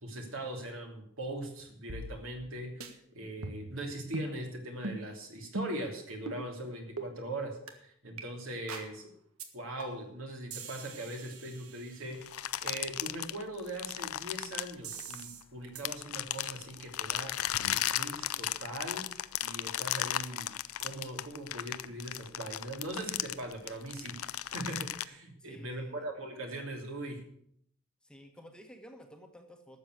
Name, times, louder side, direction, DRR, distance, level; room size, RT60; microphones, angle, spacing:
voice 1, 0.0-9.1 9.5-12.2 12.6-17.3 17.7-19.0 19.4-20.5 20.8-27.2, right 1 dB, 65° right, 2 dB, 3.0 m, -40 dB
sound 1, 1.9-2.5 2.8-2.9 3.4-3.8 4.1-4.3 4.8-5.0 5.5-5.8 6.3-6.4 7.0-7.1 7.7-7.8 8.2-8.3 8.7-8.9 9.4-9.5 9.8-10.1 10.5-12.3 14.8-15.4 15.8-15.9, right 3 dB, 90° right, 1.6 m, -41 dB
sound 2, 12.2-15.4 15.8-25.0, left 12 dB, 90° left, 0.5 m, -35 dB
voice 2, 25.4-26.0 28.0-29.8, equal, 5° left, 4 dB, 1.3 m, -52 dB
12.5 x 7.3 x 8.1 m, 0.68 s
head